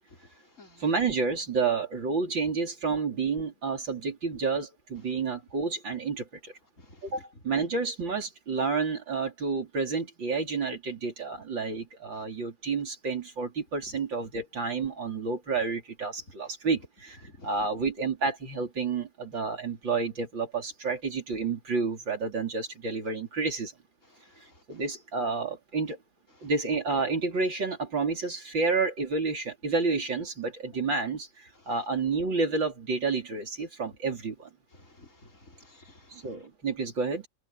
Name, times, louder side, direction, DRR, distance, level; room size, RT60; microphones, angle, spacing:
voice 1, 0.8-6.5 7.0-23.7 24.4-26.0 26.4-34.5 36.1-37.3, right 4 dB, 90° right, 4.9 m, -30 dB
voice 2, 34.8-36.1, left 2 dB, 40° left, 5.1 m, -53 dB
open air
omnidirectional pair, 2.0 m